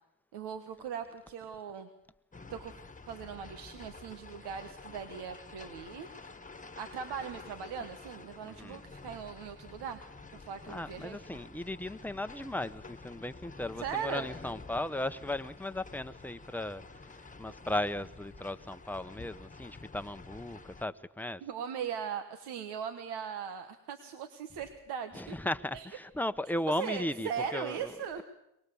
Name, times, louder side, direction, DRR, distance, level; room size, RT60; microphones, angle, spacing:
voice 1, 0.3-1.9 2.5-2.7 3.1-6.4 6.8-10.0 10.3-11.2 13.8-14.3 21.4-25.3 25.7-25.9 26.8-28.2, right 7 dB, 85° right, 1.3 m, -39 dB
sound 1, 2.3-20.8, left 3 dB, 20° left, 1.4 m, -49 dB
voice 2, 8.4-8.8 10.7-21.4 25.1-27.9, left 1 dB, 5° left, 0.9 m, -36 dB
23.0 x 20.0 x 7.0 m
supercardioid pair, 55°, 39 cm